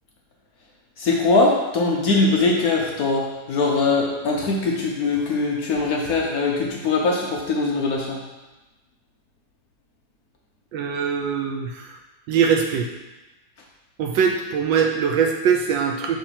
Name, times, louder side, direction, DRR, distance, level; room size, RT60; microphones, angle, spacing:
voice 1, 1.0-8.2, left 3 dB, 70° left, -1 dB, 0.9 m, -21 dB
voice 2, 10.7-12.0 12.3-12.9 14.0-16.2, right 6 dB, 75° right, 3 dB, 1.1 m, -22 dB
5.9 x 3.1 x 5.7 m, 1.1 s
omnidirectional pair, 2.4 m